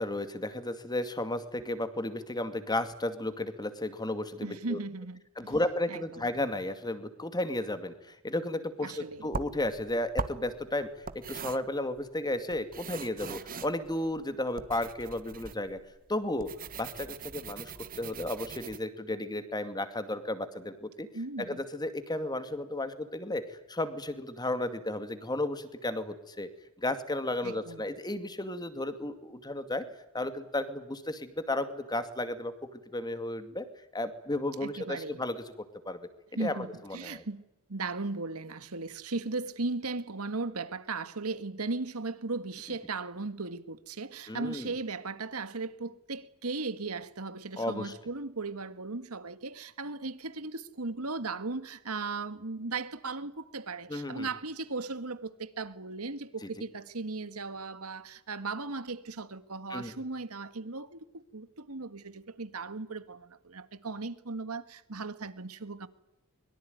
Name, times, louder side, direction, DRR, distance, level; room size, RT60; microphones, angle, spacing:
voice 1, 0.0-4.8 5.4-15.8 16.1-16.5 16.8-17.7 18.0-21.1 21.4-26.5 26.8-29.9 30.1-33.7 33.9-35.4 35.8-36.1 36.4-37.2 44.3-44.7 47.6-47.9 53.9-54.3 56.4-56.5 59.7-59.9, left 1 dB, 20° left, 2.4 m, -33 dB
voice 2, 4.4-5.6 5.9-6.3 8.8-9.3 21.1-21.6 27.4-27.8 34.6-35.2 36.3-37.4 37.7-65.9, right 3 dB, 85° right, 1.8 m, -37 dB
sound 1, 9.2-18.8, right 4 dB, 40° right, 1.4 m, -41 dB
24.0 x 23.0 x 9.5 m
head